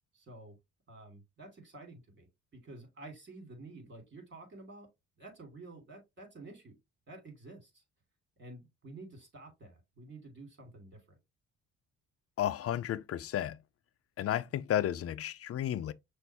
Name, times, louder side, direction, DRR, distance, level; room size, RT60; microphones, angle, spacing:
voice 1, 0.1-0.5 0.9-2.3 2.5-4.9 5.2-6.7 7.1-7.8 8.4-11.2, right 2 dB, 35° right, 2.8 m, -50 dB
voice 2, 12.4-13.6 14.2-15.9, left 11 dB, 50° left, 0.5 m, -32 dB
6.0 x 2.6 x 3.4 m
cardioid pair, 90°, 30 cm